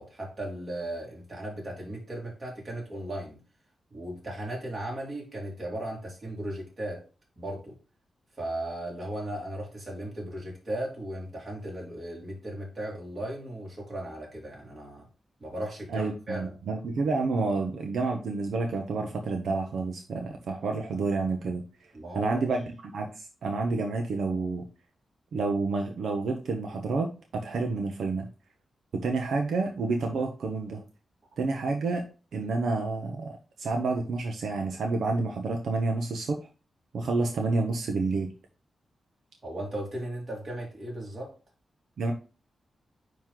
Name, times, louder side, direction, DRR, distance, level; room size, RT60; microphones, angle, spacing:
voice 1, 0.0-3.4 3.9-7.0 7.4-7.8 8.3-15.1 15.4-16.6 21.9-22.5 39.4-41.3, right 1 dB, 30° right, 2.8 m, -36 dB
voice 2, 15.9-21.6 22.1-22.6 22.9-24.7 25.3-28.3 28.9-30.8 31.4-32.0 32.3-36.4 36.9-38.3 42.0-42.1, right 3 dB, 75° right, 0.9 m, -29 dB
9.3 x 3.1 x 3.8 m
wide cardioid pair, 150°, 0 cm